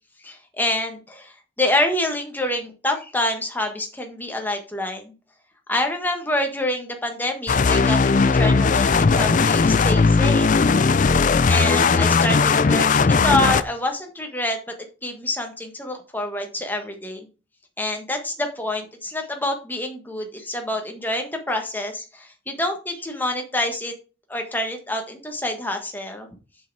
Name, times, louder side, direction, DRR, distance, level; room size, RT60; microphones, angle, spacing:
voice 1, 0.2-5.1 5.7-10.6 11.1-14.6 15.0-17.3 17.8-23.9 24.3-26.3, left 1 dB, 10° left, 4 dB, 1.5 m, -27 dB
sound 1, 7.5-13.6, left 4 dB, 40° left, 0.4 m, -18 dB
7.1 x 6.4 x 4.7 m, 0.33 s
head